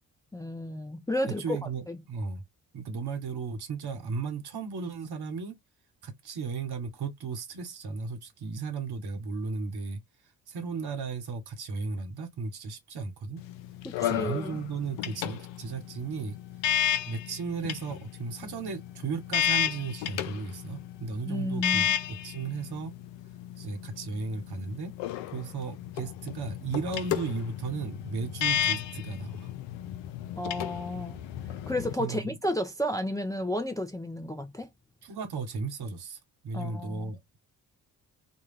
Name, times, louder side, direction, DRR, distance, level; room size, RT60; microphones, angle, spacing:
voice 1, 0.3-1.6 1.9-2.0 13.8-14.6 21.3-21.9 30.4-31.2 31.7-34.7 36.5-37.1, left 1 dB, 10° left, 0.6 m, -32 dB
voice 2, 1.4-2.4 2.7-5.5 6.0-10.0 10.5-13.4 14.0-16.4 17.0-22.9 23.6-24.9 25.3-29.5 32.0-32.4 35.0-37.2, right 5 dB, 55° right, 1.1 m, -35 dB
sound 1, 13.4-31.9, left 10 dB, 70° left, 0.5 m, -33 dB
2.3 x 2.2 x 3.3 m
hypercardioid pair, 45°, 46 cm